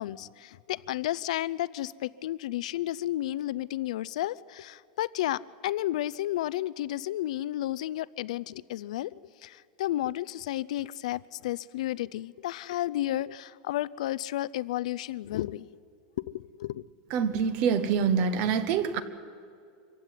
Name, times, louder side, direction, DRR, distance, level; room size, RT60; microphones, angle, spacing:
voice 1, 0.0-9.1 9.4-15.7 16.3-16.8, left 14 dB, 70° left, 19 dB, 0.6 m, -32 dB
voice 2, 17.1-19.0, right 6 dB, 35° right, 13 dB, 1.2 m, -25 dB
25.5 x 15.5 x 9.3 m, 2.3 s
supercardioid pair, 180°, 4 cm